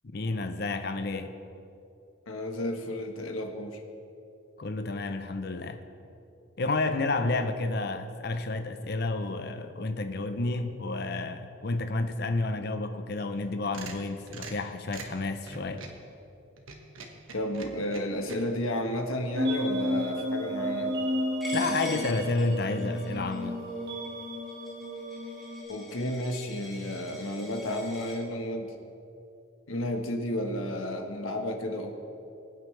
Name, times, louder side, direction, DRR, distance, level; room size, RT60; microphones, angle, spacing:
voice 1, 0.0-1.3 4.6-5.8 6.6-15.8 21.5-23.6, left 2 dB, 50° left, 8 dB, 0.6 m, -30 dB
voice 2, 2.3-3.8 17.3-20.9 25.7-28.7 29.7-31.9, left 1 dB, 85° left, 4 dB, 1.3 m, -32 dB
sound 1, 13.4-16.0 16.6-18.4, right 3 dB, 80° right, 1.3 m, -43 dB
sound 2, 19.4-25.6, equal, 55° right, 1.6 m, -32 dB
Coin (dropping), 21.4-28.2, equal, ahead, 3.0 m, -44 dB
22.0 x 9.3 x 3.3 m, 2.7 s
head